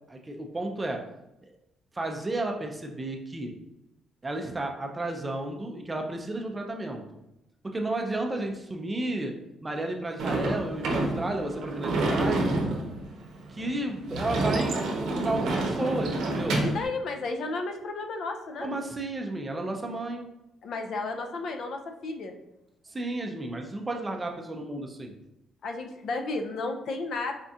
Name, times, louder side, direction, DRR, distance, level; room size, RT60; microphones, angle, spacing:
voice 1, 0.1-1.0 1.4-1.5 1.9-3.5 4.2-7.0 7.6-9.3 9.6-12.6 13.5-16.6 18.6-20.3 22.8-25.1, right 2 dB, 15° right, 3 dB, 0.4 m, -32 dB
Sliding door / Slam, 10.2-16.9, right 2 dB, 75° right, 0.6 m, -28 dB
voice 2, 16.6-18.7 20.6-22.4 25.6-27.3, left 3 dB, 60° left, 4 dB, 0.4 m, -33 dB
4.2 x 2.3 x 2.6 m, 0.90 s
cardioid pair, 140°, 0 cm